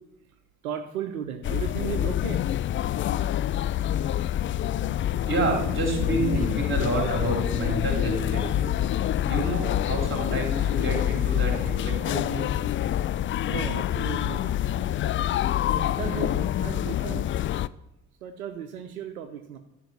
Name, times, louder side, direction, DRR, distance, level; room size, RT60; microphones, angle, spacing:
voice 1, 0.6-2.5 6.3-6.4 13.5-15.3 15.7-17.3 18.2-19.6, right 9 dB, 80° right, 8 dB, 0.8 m, -36 dB
sound 1, 1.4-17.7, left 11 dB, 30° left, 0.4 m, -26 dB
voice 2, 5.2-8.7 9.2-12.5, right 2 dB, 25° right, 1 dB, 4.0 m, -29 dB
13.0 x 5.1 x 8.2 m, 0.89 s
figure-of-eight pair, 45°, 42 cm